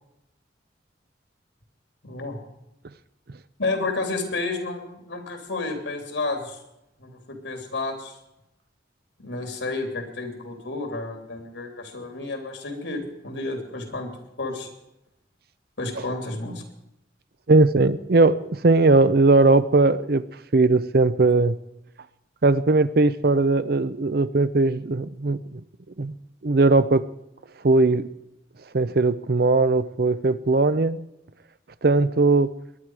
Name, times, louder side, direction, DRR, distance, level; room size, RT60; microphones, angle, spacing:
voice 1, 2.0-2.4 3.6-6.6 7.0-8.2 9.2-14.1 14.4-14.7 15.8-16.6, left 3 dB, 90° left, 4 dB, 3.2 m, -31 dB
voice 2, 17.5-20.2 20.5-21.5 22.4-25.6 26.0-26.1 26.4-27.1 27.6-28.1 28.7-31.0 31.8-32.5, right 3 dB, 55° right, 15 dB, 0.6 m, -19 dB
22.5 x 10.5 x 4.8 m, 0.86 s
head